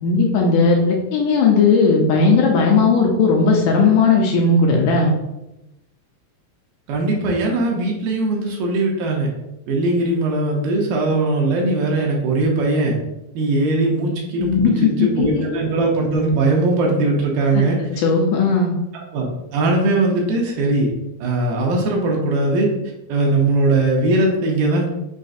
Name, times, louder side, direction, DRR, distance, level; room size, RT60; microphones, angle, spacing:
voice 1, 0.0-5.1 14.4-15.6 17.5-17.6 18.0-18.7, left 4 dB, 80° left, 0 dB, 1.9 m, -16 dB
voice 2, 6.9-9.3 9.7-13.0 13.3-17.8 19.1-19.3 19.5-20.9 21.2-22.7 23.1-24.9, right 2 dB, 90° right, -1 dB, 2.5 m, -19 dB
6.2 x 2.4 x 2.6 m, 0.91 s
omnidirectional pair, 4.0 m